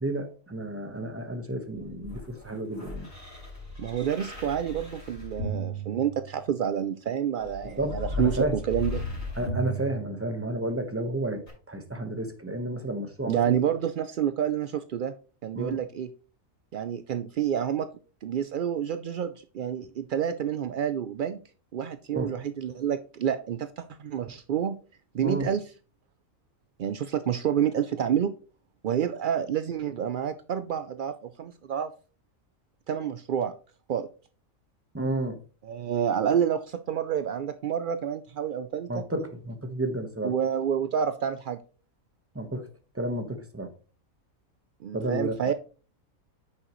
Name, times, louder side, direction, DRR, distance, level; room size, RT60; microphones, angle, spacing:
voice 1, 0.0-3.1 7.8-8.5 9.4-11.4 11.7-13.4 15.5-15.8 22.1-22.4 25.2-25.5 34.9-35.4 38.9-40.3 42.3-42.7 42.9-43.7 44.9-45.5, right 1 dB, 10° right, 6 dB, 1.0 m, -31 dB
sound 1, 1.7-6.7 7.4-10.7 11.5-11.6, equal, 45° left, 5.1 m, -36 dB
voice 2, 3.8-9.0 13.3-15.1 15.4-16.1 16.7-17.9 18.2-21.4 21.7-24.8 25.1-25.6 26.8-28.3 28.8-31.9 32.9-33.5 33.9-34.1 35.6-39.0 40.2-41.6 44.8-45.5, right 9 dB, 75° right, 11 dB, 0.4 m, -28 dB
9.7 x 6.4 x 3.1 m, 0.37 s
omnidirectional pair, 1.4 m